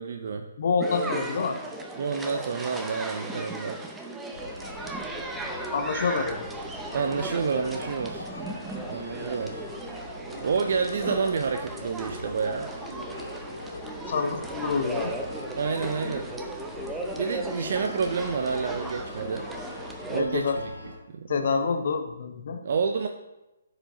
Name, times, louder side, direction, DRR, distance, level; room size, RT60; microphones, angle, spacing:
voice 1, 0.0-0.5 2.0-3.8 6.9-8.3 8.8-9.6 10.4-12.7 15.6-16.3 17.2-19.5 20.1-20.7 21.1-21.5 22.6-23.1, right 5 dB, 55° right, 5 dB, 0.5 m, -29 dB
voice 2, 0.6-1.6 5.7-6.5 14.1-15.2 20.1-20.6 21.3-22.6, left 5 dB, 55° left, 6 dB, 0.7 m, -27 dB
sound 1, 0.8-20.2, right 2 dB, 5° right, 0.7 m, -37 dB
sound 2, 4.3-21.0, left 2 dB, 90° left, 2.3 m, -42 dB
sound 3, 9.0-19.1, right 2 dB, 40° right, 2.6 m, -44 dB
13.5 x 4.9 x 2.7 m, 1.0 s
figure-of-eight pair, 140°, 0 cm